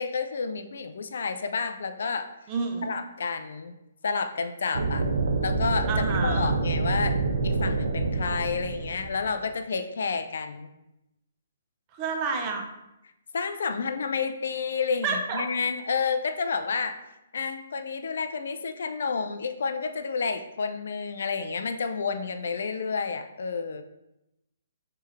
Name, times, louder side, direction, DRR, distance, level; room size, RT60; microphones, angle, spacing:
voice 1, 0.0-2.3 2.8-3.7 4.0-5.0 5.4-7.2 7.4-10.7 13.3-16.9 17.3-23.8, left 5 dB, 70° left, 8 dB, 0.4 m, -30 dB
voice 2, 2.5-2.9 5.9-6.6 11.9-12.7 15.0-15.4, right 4 dB, 30° right, 2 dB, 0.6 m, -29 dB
sound 1, 4.7-9.5, right 3 dB, 75° right, 0.5 m, -27 dB
3.4 x 3.3 x 3.2 m, 0.90 s
hypercardioid pair, 150°, 0 cm